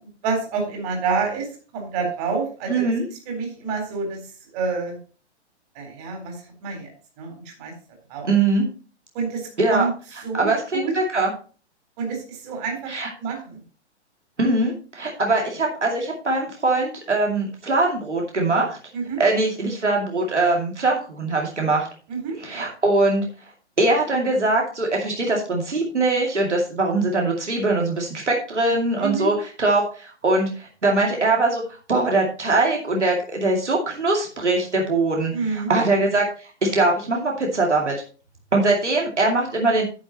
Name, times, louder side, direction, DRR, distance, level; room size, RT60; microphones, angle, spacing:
voice 1, 0.2-2.8 3.3-4.2 4.5-5.0 5.8-6.4 6.6-6.9 7.2-7.3 7.6-7.7 8.1-8.3 9.1-9.9 10.2-10.9 12.0-12.9 13.2-13.6 18.9-19.2 22.1-22.4 29.0-29.3 35.3-35.7, right 5 dB, 35° right, 2 dB, 3.9 m, -27 dB
voice 2, 2.7-3.1 8.3-8.7 9.6-9.8 10.3-11.3 12.9-13.1 14.4-18.8 19.2-21.9 22.4-23.2 23.8-31.6 31.9-38.0 38.5-39.8, right 2 dB, 80° right, 0 dB, 2.5 m, -22 dB
10.5 x 8.8 x 2.9 m, 0.37 s
figure-of-eight pair, 120°, 35 cm